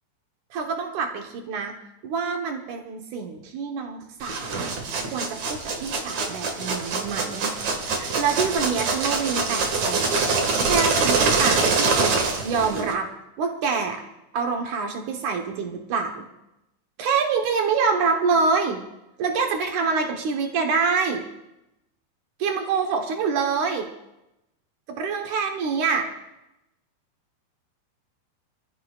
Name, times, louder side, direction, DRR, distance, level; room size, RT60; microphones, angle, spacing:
voice 1, 0.5-1.7 2.0-4.7 5.1-7.5 7.9-10.2 10.6-13.1 13.4-14.0 14.3-16.3 17.0-18.8 19.2-21.2 22.4-23.9 25.0-26.1, right 5 dB, 90° right, 3 dB, 1.7 m, -26 dB
sound 1, 4.2-12.9, right 4 dB, 50° right, 2.3 m, -24 dB
26.5 x 15.5 x 2.4 m, 0.90 s
omnidirectional pair, 5.4 m